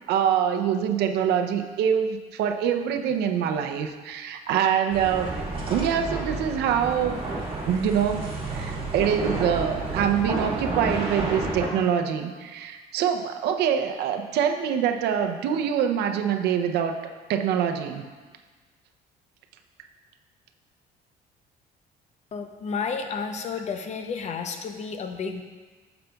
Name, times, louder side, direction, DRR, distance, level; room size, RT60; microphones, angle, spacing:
voice 1, 0.1-5.3 5.7-7.4 7.7-17.0 17.3-18.0, right 8 dB, 80° right, 5 dB, 0.6 m, -25 dB
sound 1, 4.9-11.7, right 3 dB, 30° right, 1.6 m, -30 dB
voice 2, 22.3-25.4, left 5 dB, 40° left, 6 dB, 0.6 m, -31 dB
8.8 x 6.9 x 2.3 m, 1.4 s
cardioid pair, 110°, 17 cm